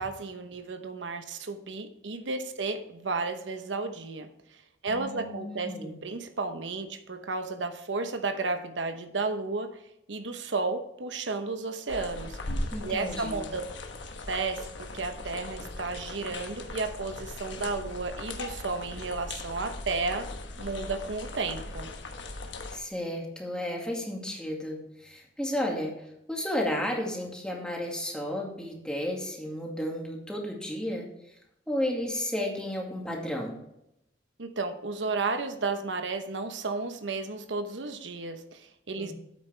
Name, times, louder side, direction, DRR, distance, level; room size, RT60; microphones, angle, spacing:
voice 1, 0.0-4.3 4.8-9.8 10.1-12.4 12.8-13.6 14.3-20.3 20.6-21.9 34.4-39.1, right 3 dB, 85° right, 8 dB, 0.9 m, -33 dB
voice 2, 4.9-6.0 12.7-13.5 22.7-25.9 26.3-31.1 31.7-33.5 39.0-39.1, left 1 dB, 5° left, -1 dB, 2.1 m, -33 dB
sound 1, 11.9-22.8, left 2 dB, 85° left, 1.3 m, -39 dB
9.6 x 8.1 x 3.3 m, 0.84 s
head